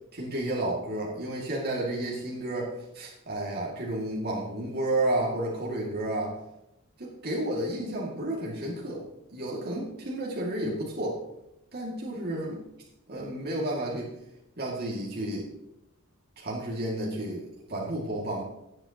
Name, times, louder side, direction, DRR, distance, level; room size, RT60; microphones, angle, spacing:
voice 1, 0.1-6.4 7.0-9.0 9.3-11.2 11.7-12.6 13.1-14.1 14.6-15.5 16.4-18.4, right 1 dB, 50° right, -4 dB, 2.2 m, -31 dB
17.0 x 7.5 x 2.9 m, 0.87 s
head